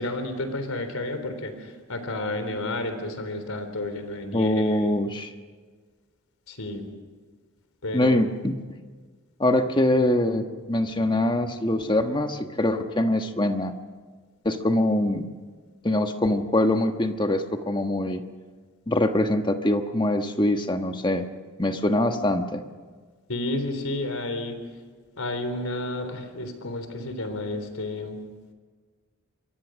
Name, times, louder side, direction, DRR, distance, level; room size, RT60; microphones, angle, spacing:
voice 1, 0.0-4.8 6.5-6.9 7.8-8.3 23.3-24.6 25.2-28.2, left 2 dB, 85° left, 8 dB, 3.7 m, -31 dB
voice 2, 4.3-5.3 7.9-8.6 9.4-13.7 14.4-15.3 15.8-18.2 18.9-21.3 21.6-22.6, left 1 dB, 20° left, 6 dB, 1.3 m, -23 dB
27.5 x 23.0 x 6.3 m, 1.5 s
head